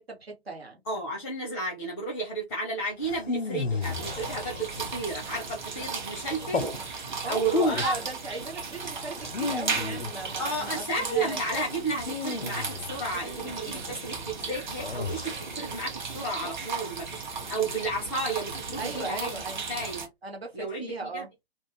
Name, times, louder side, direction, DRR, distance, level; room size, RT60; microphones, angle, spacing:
voice 1, 0.0-0.8 7.2-11.4 13.2-13.9 18.8-19.7 20.2-21.3, right 3 dB, 75° right, 1.3 m, -38 dB
voice 2, 0.9-6.6 7.3-7.9 10.4-19.3 19.7-20.1 20.5-21.3, right 2 dB, 10° left, 0.5 m, -32 dB
sound 1, 3.0-5.0 6.3-6.8 7.4-8.1 9.2-10.5 12.0-13.2 14.8-15.6, left 4 dB, 90° left, 0.5 m, -33 dB
sound 2, 3.8-20.1, right 4 dB, 50° right, 0.8 m, -36 dB
2.4 x 2.2 x 3.2 m
figure-of-eight pair, 130°, 31 cm